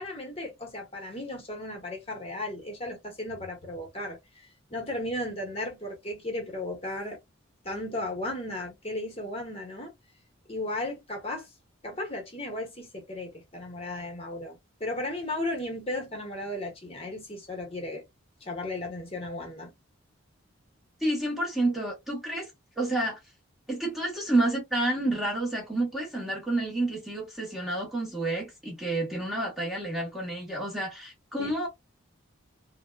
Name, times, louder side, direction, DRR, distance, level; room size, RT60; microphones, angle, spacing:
voice 1, 0.0-7.2 7.6-9.9 10.5-11.5 11.8-18.0 18.4-19.7 31.4-31.5, left 1 dB, 30° left, 0.8 m, -35 dB
voice 2, 21.0-22.5 22.8-23.2 23.7-31.7, right 2 dB, ahead, 0.8 m, -29 dB
3.4 x 2.1 x 2.2 m
head